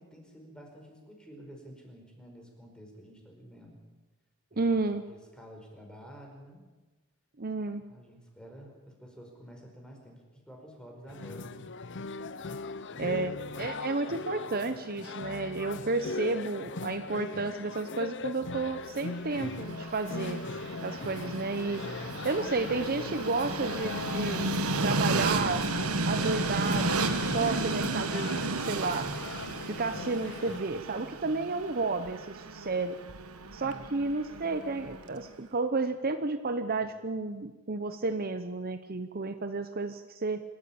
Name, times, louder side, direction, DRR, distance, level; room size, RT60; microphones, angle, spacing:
voice 1, 0.0-3.8 4.5-4.8 5.1-6.7 7.9-11.7 12.9-13.5 33.4-33.9, equal, 5° left, 1 dB, 5.0 m, -50 dB
voice 2, 4.6-5.0 7.4-7.8 13.0-20.4 20.8-21.8 22.2-24.5 24.8-25.6 26.0-28.3 28.6-29.1 29.7-33.0 33.5-40.4, right 3 dB, 45° right, 9 dB, 0.9 m, -32 dB
sound 1, 11.1-30.6, left 3 dB, 55° left, 0.9 m, -39 dB
Train, 19.2-35.2, right 3 dB, 75° right, 1.3 m, -33 dB
26.5 x 14.0 x 8.7 m, 1.2 s
head